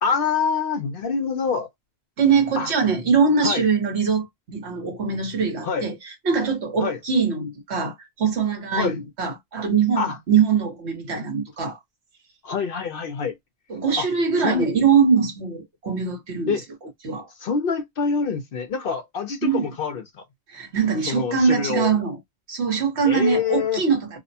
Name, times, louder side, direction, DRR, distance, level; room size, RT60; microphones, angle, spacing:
voice 1, 0.0-1.7 2.6-2.7 3.4-3.7 5.6-5.9 6.8-7.0 8.7-9.0 10.0-10.2 12.4-13.4 14.0-14.1 14.4-14.7 16.5-16.6 17.4-20.2 21.1-22.0 23.0-23.8, left 6 dB, 60° left, 0.7 m, -26 dB
voice 2, 2.2-6.0 6.2-11.8 13.7-16.5 17.0-17.3 19.4-19.7 20.5-22.2 22.5-24.2, right 5 dB, 70° right, 1.3 m, -22 dB
2.7 x 2.1 x 2.6 m
omnidirectional pair, 1.2 m